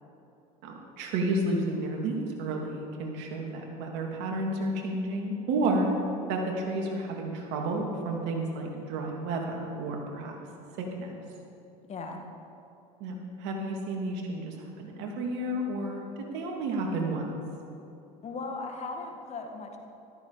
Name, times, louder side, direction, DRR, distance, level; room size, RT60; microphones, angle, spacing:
voice 1, 0.6-5.9 6.3-10.3 11.0-11.2 13.0-17.3, right 2 dB, 65° right, 1 dB, 2.8 m, -31 dB
voice 2, 11.9-12.2 18.2-19.8, left 3 dB, 35° left, 3 dB, 2.1 m, -37 dB
14.0 x 13.5 x 5.0 m, 2.8 s
hypercardioid pair, 85°, 19 cm